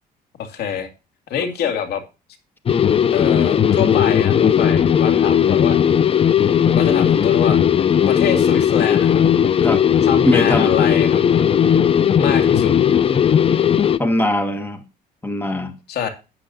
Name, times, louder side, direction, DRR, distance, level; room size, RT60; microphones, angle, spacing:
voice 1, 0.4-0.9 1.3-2.0 3.1-5.8 6.7-7.6 8.1-9.2 10.0-11.5 12.2-12.7 15.9-16.1, left 7 dB, 75° left, 2.3 m, -25 dB
sound 1, 2.7-14.0, left 8 dB, 35° left, 0.6 m, -16 dB
voice 2, 10.2-10.7 14.0-14.8 15.2-15.7, left 1 dB, 10° left, 1.6 m, -21 dB
12.0 x 8.5 x 2.7 m
cardioid pair, 110°, 17 cm